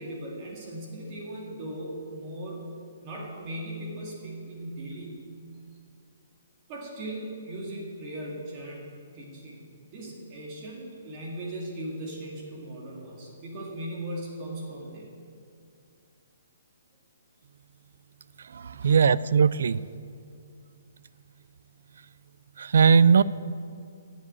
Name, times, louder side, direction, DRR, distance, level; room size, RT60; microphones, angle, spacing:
voice 1, 0.0-2.7 3.0-5.2 6.7-8.9 9.1-15.1 18.8-19.0, right 1 dB, 25° right, -3 dB, 2.2 m, -38 dB
voice 2, 18.5-19.8 22.6-23.2, right 6 dB, 65° right, 18 dB, 0.4 m, -19 dB
12.0 x 7.4 x 8.4 m, 2.3 s
hypercardioid pair, 170°, 0 cm